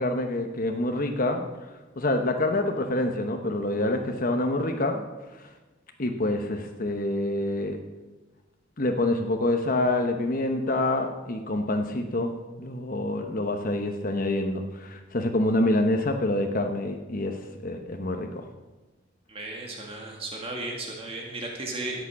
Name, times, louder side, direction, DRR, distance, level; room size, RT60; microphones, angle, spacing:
voice 1, 0.0-1.5 2.0-5.0 6.0-7.8 8.8-18.5, left 1 dB, 45° left, 4 dB, 1.0 m, -27 dB
voice 2, 19.3-22.0, right 2 dB, 30° right, 0 dB, 2.0 m, -35 dB
13.0 x 8.4 x 6.3 m, 1.2 s
head